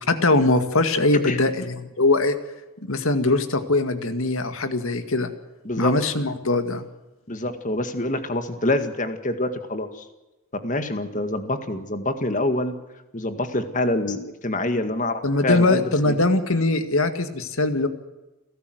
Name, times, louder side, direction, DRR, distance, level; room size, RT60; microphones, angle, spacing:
voice 1, 0.1-2.4 2.9-5.3 5.8-6.9 15.2-17.9, left 2 dB, 70° left, 9 dB, 2.0 m, -21 dB
voice 2, 7.3-10.0 10.6-12.8 13.1-16.1, left 1 dB, 35° left, 8 dB, 2.0 m, -26 dB
29.5 x 12.5 x 8.0 m, 1.0 s
head